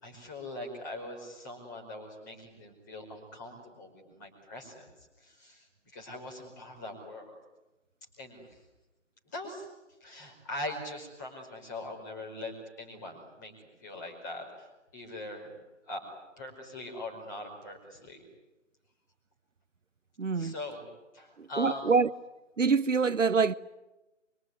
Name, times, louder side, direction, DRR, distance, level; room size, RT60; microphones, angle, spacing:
voice 1, 0.0-4.9 5.2-7.4 8.2-8.6 9.2-9.7 10.0-14.7 14.9-15.6 15.9-16.0 16.4-18.2 20.3-20.8 21.1-21.9, left 1 dB, 15° left, 5.0 m, -42 dB
voice 2, 20.2-20.5 21.6-22.1 22.6-23.5, right 5 dB, 75° right, 1.0 m, -25 dB
25.0 x 24.5 x 9.7 m
figure-of-eight pair, 170°, 38 cm